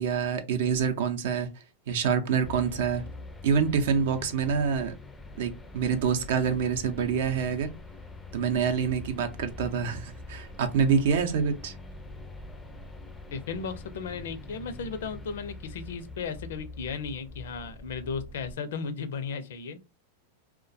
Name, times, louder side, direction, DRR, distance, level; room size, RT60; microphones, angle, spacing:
voice 1, 0.0-1.5 1.9-3.0 3.4-4.9 5.4-7.7 8.3-11.7, right 6 dB, 70° right, 0.5 m, -26 dB
sound 1, 2.4-18.5, left 2 dB, 10° left, 0.4 m, -44 dB
voice 2, 13.3-19.8, left 5 dB, 75° left, 0.5 m, -35 dB
2.2 x 2.2 x 2.6 m
hypercardioid pair, 120°, 0 cm